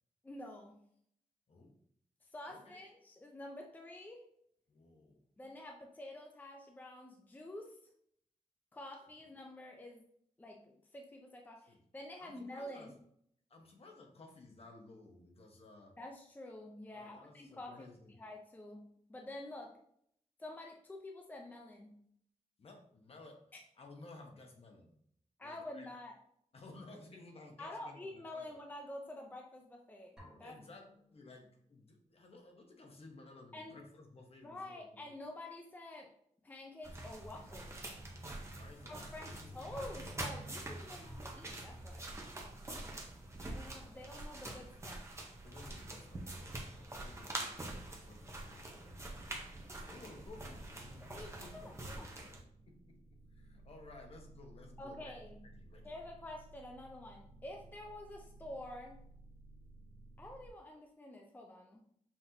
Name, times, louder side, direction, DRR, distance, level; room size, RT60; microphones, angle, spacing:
voice 1, 0.2-0.8 2.2-4.3 5.4-7.8 8.7-10.1 10.4-12.9 16.0-19.8 20.4-22.0 23.5-23.6 25.4-26.1 27.6-30.6 33.5-33.8 34.4-36.1 36.4-37.8 38.9-42.1 43.5-45.1 50.9-52.1 54.8-55.4 55.8-59.0 60.2-61.8, left 1 dB, 15° left, 1 dB, 0.4 m, -49 dB
voice 2, 2.5-2.9 4.7-5.2 11.7-11.8 12.2-12.9 13.5-16.0 16.9-18.1 19.6-19.7 22.6-23.4 23.8-25.0 25.4-25.9 26.5-28.5 30.4-35.1 38.1-39.6 41.0-41.1 42.9-44.0 45.4-51.7 52.0-52.1 52.7-53.0 53.3-55.1 55.4-56.0, left 2 dB, 50° left, 2 dB, 0.8 m, -56 dB
sound 1, 30.2-32.0, left 1 dB, 5° right, 1.2 m, -61 dB
sound 2, 36.8-52.4, right 1 dB, 20° right, 0.7 m, -45 dB
sound 3, 50.3-60.5, right 2 dB, 60° right, 1.2 m, -57 dB
5.7 x 3.0 x 2.7 m, 0.67 s
wide cardioid pair, 180°, 13 cm